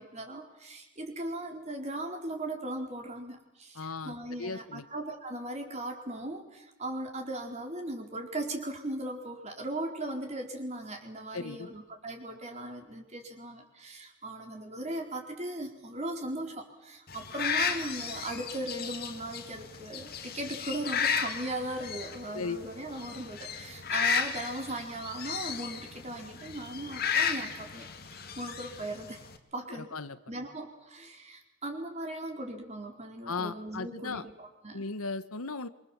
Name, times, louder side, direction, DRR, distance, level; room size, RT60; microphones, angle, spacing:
voice 1, 0.0-29.2 29.5-29.9 30.3-34.9, right 1 dB, 30° right, 2 dB, 4.5 m, -38 dB
voice 2, 3.7-4.8 11.3-11.7 22.3-22.6 29.7-30.2 33.2-34.2 34.7-35.7, left 4 dB, 90° left, 12 dB, 1.3 m, -36 dB
sound 1, 17.1-29.4, left 6 dB, 45° left, 2.4 m, -34 dB
26.5 x 25.5 x 7.6 m, 0.97 s
head